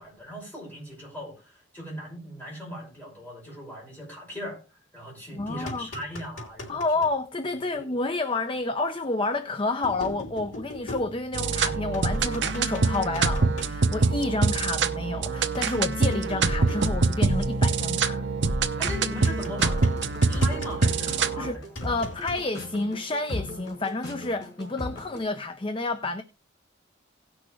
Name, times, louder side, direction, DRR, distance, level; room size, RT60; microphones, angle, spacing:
voice 1, 0.0-6.8 18.8-20.0 20.3-21.6, equal, 10° left, 5.7 m, -39 dB
voice 2, 5.3-5.9 6.7-18.2 21.4-26.2, left 2 dB, 25° left, 0.6 m, -29 dB
sound 1, 5.4-7.1 8.6-8.7 9.8-11.6 11.9-13.7 15.5-17.3 19.2-21.3 21.7-22.5, left 1 dB, 90° left, 3.4 m, -40 dB
sound 2, 11.3-21.5, right 4 dB, 65° right, 0.9 m, -25 dB
sound 3, 18.7-25.2, left 1 dB, 60° left, 5.0 m, -38 dB
17.5 x 6.2 x 3.2 m
head